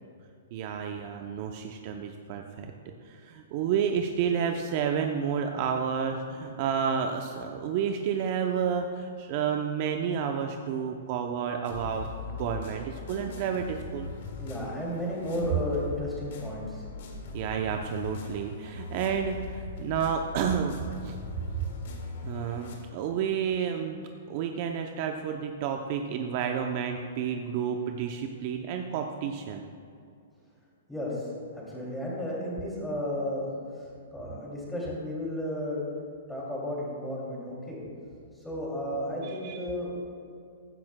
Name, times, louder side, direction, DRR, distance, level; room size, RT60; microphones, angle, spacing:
voice 1, 0.5-12.1 12.4-14.1 17.3-21.2 22.2-29.6 39.2-39.6, right 7 dB, 40° right, 4 dB, 0.5 m, -30 dB
sound 1, 11.6-22.8, left 4 dB, 60° left, 1.9 m, -40 dB
voice 2, 14.4-16.8 30.9-33.5 34.1-35.8 36.3-37.8 38.4-40.1, left 1 dB, 5° left, -5 dB, 2.5 m, -33 dB
15.0 x 10.5 x 2.2 m, 2.4 s
hypercardioid pair, 160°, 0 cm